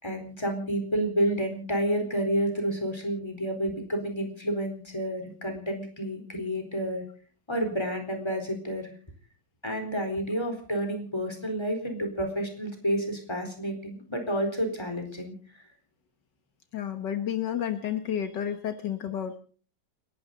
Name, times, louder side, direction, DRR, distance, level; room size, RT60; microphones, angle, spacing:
voice 1, 0.0-7.0 7.5-8.9 9.6-15.3, right 1 dB, 15° left, 4 dB, 4.3 m, -30 dB
voice 2, 16.7-19.4, left 9 dB, 75° left, 8 dB, 1.9 m, -31 dB
29.5 x 11.5 x 4.0 m, 0.42 s
omnidirectional pair, 1.9 m